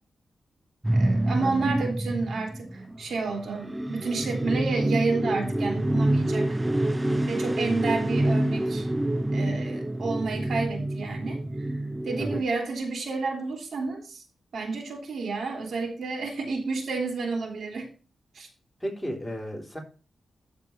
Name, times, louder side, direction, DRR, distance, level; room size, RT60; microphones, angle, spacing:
sound 1, 0.8-12.4, right 1 dB, 15° right, 0.6 m, -27 dB
voice 1, 0.9-6.6 7.3-8.9 9.3-14.2 14.5-17.9 18.3-18.5, right 3 dB, 75° right, 2 dB, 3.3 m, -30 dB
voice 2, 18.8-19.8, equal, 5° left, -1 dB, 3.6 m, -34 dB
13.5 x 4.6 x 4.5 m, 0.35 s
wide cardioid pair, 115°, 0 cm